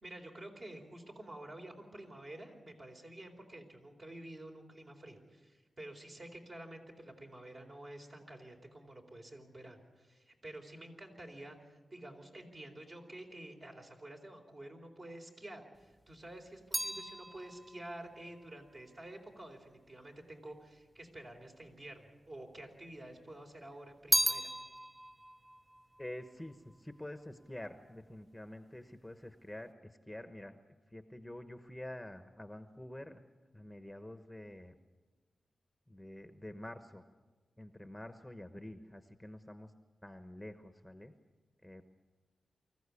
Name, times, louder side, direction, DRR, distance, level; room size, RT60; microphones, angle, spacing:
voice 1, 0.0-24.5, right 1 dB, 45° right, 2 dB, 4.1 m, -50 dB
sound 1, 15.8-20.2 21.0-21.8 22.1-23.2 23.5-27.1 27.3-27.9, right 1 dB, 15° right, 0.8 m, -37 dB
voice 2, 26.0-30.6 30.9-33.2 33.5-34.7 35.9-37.0 37.6-39.7 40.0-41.1 41.6-41.8, left 1 dB, 5° left, 8 dB, 1.1 m, -47 dB
24.5 x 15.0 x 8.5 m, 1.3 s
wide cardioid pair, 85°, 0 cm